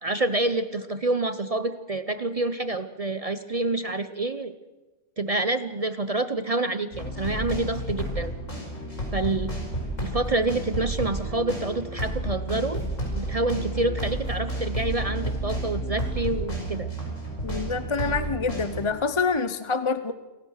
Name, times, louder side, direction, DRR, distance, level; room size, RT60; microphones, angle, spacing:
voice 1, 0.0-4.5 5.2-8.3 9.1-9.5 10.0-12.8 13.2-16.9, right 2 dB, 35° right, 11 dB, 0.7 m, -27 dB
sound 1, 6.9-18.9, right 1 dB, 90° left, 6.0 m, -31 dB
voice 2, 17.4-20.1, left 4 dB, 30° left, 11 dB, 0.6 m, -26 dB
28.5 x 15.0 x 6.5 m, 1.2 s
omnidirectional pair, 1.3 m